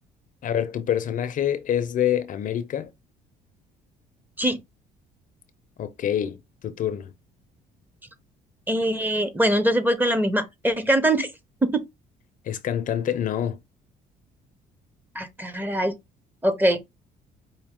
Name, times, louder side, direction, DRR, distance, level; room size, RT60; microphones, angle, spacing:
voice 1, 0.4-2.9 5.8-7.1 12.5-13.6, left 10 dB, 50° left, 0.6 m, -26 dB
voice 2, 8.7-11.3 11.6-11.8 15.1-15.9 16.4-16.8, right 1 dB, 10° right, 0.9 m, -22 dB
5.1 x 2.7 x 3.6 m
cardioid pair, 110°, 17 cm